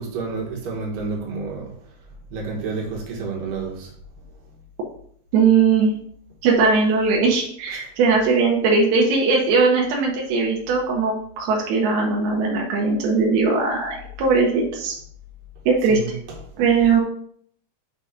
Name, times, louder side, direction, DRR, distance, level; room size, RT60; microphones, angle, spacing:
voice 1, 0.0-1.8 2.3-3.9 7.7-7.9 15.9-16.4, right 4 dB, 70° right, -1 dB, 3.0 m, -30 dB
voice 2, 5.3-5.9 6.4-14.9 15.7-16.0 16.6-17.0, right 4 dB, 85° right, -1 dB, 3.0 m, -19 dB
6.6 x 3.6 x 5.1 m, 0.62 s
omnidirectional pair, 4.4 m